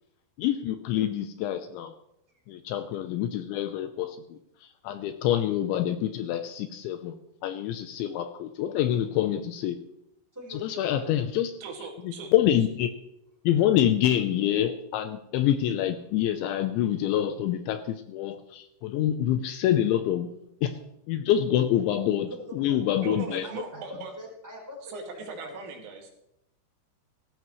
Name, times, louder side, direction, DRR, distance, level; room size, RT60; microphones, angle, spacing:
voice 1, 0.4-1.9 2.5-4.4 4.8-7.2 7.4-9.8 10.5-11.5 12.0-12.9 13.4-20.3 20.6-20.7 21.1-23.5, left 11 dB, 80° left, 9 dB, 2.9 m, -26 dB
voice 2, 10.3-11.1 20.7-20.8 22.2-25.6, left 1 dB, 5° right, -2 dB, 3.4 m, -43 dB
voice 3, 11.6-12.3 23.0-24.1 24.9-26.1, right 5 dB, 80° right, 2 dB, 4.8 m, -39 dB
17.5 x 15.0 x 3.2 m, 0.81 s
omnidirectional pair, 5.8 m